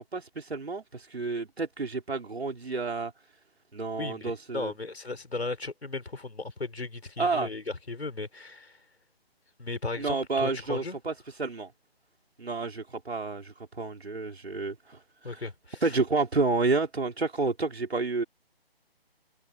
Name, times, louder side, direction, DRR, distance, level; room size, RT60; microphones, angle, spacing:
voice 1, 0.0-3.1 3.7-4.7 7.2-7.5 10.0-11.1 11.4-11.7 12.4-15.4 15.8-18.2, right 3 dB, 85° right, 4.0 m, -30 dB
voice 2, 4.0-8.8 9.6-11.0 15.2-16.0, left 3 dB, 90° left, 5.5 m, -36 dB
figure-of-eight pair, 160°, 31 cm